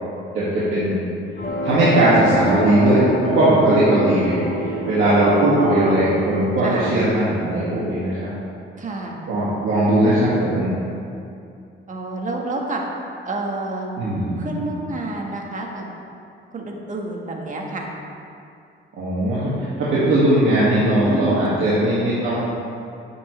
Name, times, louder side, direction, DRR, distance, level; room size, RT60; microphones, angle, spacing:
voice 1, 0.3-1.0 1.6-8.3 9.3-10.7 14.0-14.7 18.9-22.4, right 1 dB, 80° right, -10 dB, 2.0 m, -19 dB
sound 1, 1.4-7.6, equal, 50° left, 2.2 m, -28 dB
voice 2, 5.2-6.0 6.6-6.9 8.8-9.2 11.9-12.8 13.3-13.9 14.4-15.9 16.5-17.9 21.1-21.7, right 2 dB, 40° right, 0 dB, 1.5 m, -28 dB
10.0 x 7.6 x 3.3 m, 2.5 s
cardioid pair, 90°, 20 cm